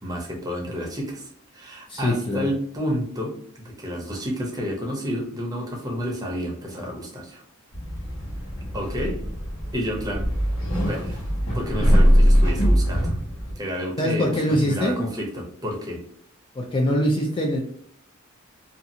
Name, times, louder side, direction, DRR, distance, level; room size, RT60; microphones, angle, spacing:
voice 1, 0.0-1.3 1.5-7.4 8.7-9.2 9.7-10.3 10.8-11.2 11.5-13.1 13.6-16.0, equal, 20° right, 0 dB, 0.6 m, -30 dB
voice 2, 1.9-2.5 8.6-8.7 14.0-15.0 16.6-17.6, equal, 25° left, 0 dB, 0.4 m, -23 dB
sound 1, 7.7-13.5, equal, 70° left, 1.0 m, -21 dB
2.6 x 2.4 x 2.7 m, 0.62 s
head